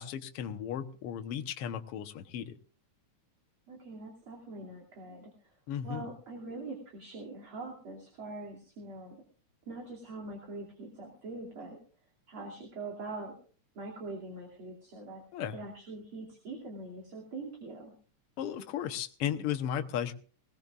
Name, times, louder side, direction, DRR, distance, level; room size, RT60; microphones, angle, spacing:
voice 1, 0.0-2.6 5.7-6.1 15.3-15.6 18.4-20.1, left 9 dB, 60° left, 7 dB, 1.7 m, -35 dB
voice 2, 3.7-5.5 5.8-9.2 9.7-11.8 12.3-13.3 13.8-15.2 15.5-17.9, right 2 dB, 45° right, -1 dB, 3.4 m, -43 dB
21.0 x 18.5 x 2.5 m, 0.40 s
omnidirectional pair, 3.4 m